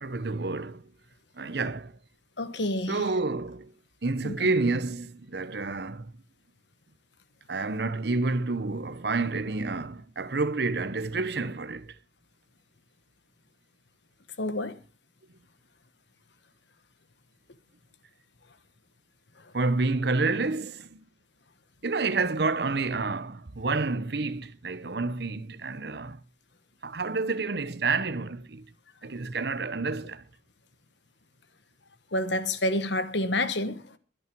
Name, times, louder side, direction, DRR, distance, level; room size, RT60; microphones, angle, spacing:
voice 1, 0.0-0.8 1.4-1.9 2.9-3.7 4.0-6.1 7.5-12.0 19.5-21.0 21.8-26.2 26.8-28.7 29.0-30.2, right 3 dB, 60° right, 0.9 m, -29 dB
voice 2, 2.4-3.0 4.2-4.5 14.4-14.8 32.1-34.0, left 1 dB, 70° left, 1.4 m, -29 dB
22.5 x 8.7 x 4.6 m
head